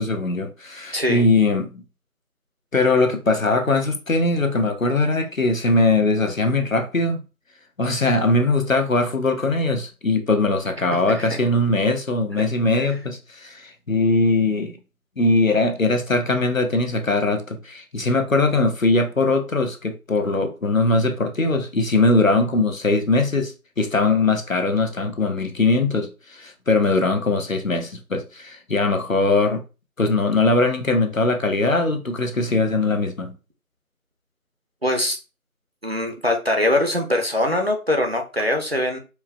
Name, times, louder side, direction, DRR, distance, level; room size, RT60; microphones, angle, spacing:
voice 1, 0.0-1.8 2.7-7.2 7.8-14.7 15.2-29.6 30.0-33.3, left 2 dB, 60° left, 1.0 m, -21 dB
voice 2, 0.9-1.2 11.1-11.4 12.8-12.9 34.8-35.2 35.8-39.0, left 1 dB, 45° right, 0.7 m, -22 dB
4.5 x 2.2 x 3.3 m
figure-of-eight pair, 170°, 45 cm